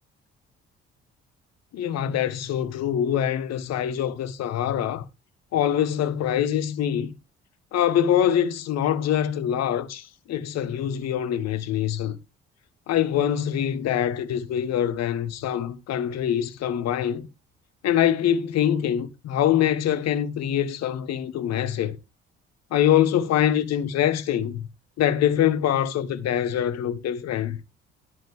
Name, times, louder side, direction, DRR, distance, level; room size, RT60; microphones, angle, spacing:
voice 1, 1.7-5.0 5.5-7.1 7.7-12.2 12.9-17.3 17.8-22.0 22.7-24.6 25.0-27.6, left 10 dB, 50° left, 1.3 m, -24 dB
10.5 x 9.2 x 3.5 m
figure-of-eight pair, 45°, 33 cm